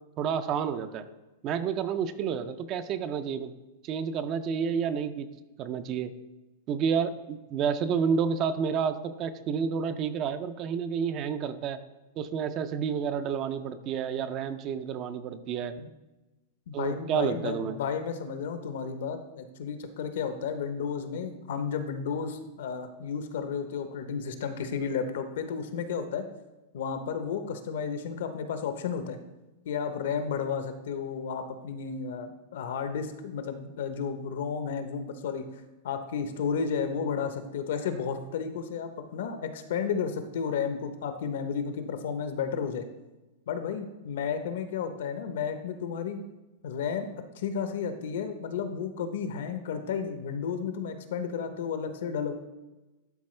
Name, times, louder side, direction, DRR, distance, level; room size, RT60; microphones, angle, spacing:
voice 1, 0.2-1.0 1.4-3.5 3.8-5.3 5.6-6.1 6.7-11.8 12.2-15.7 16.7-17.8, right 7 dB, 30° right, 12 dB, 0.4 m, -30 dB
voice 2, 16.7-26.2 26.7-29.2 29.6-35.4 35.8-42.8 43.5-46.2 46.6-47.1 47.3-52.3, left 6 dB, 70° left, 8 dB, 0.8 m, -32 dB
11.5 x 4.2 x 3.2 m, 1.1 s
supercardioid pair, 160°, 0 cm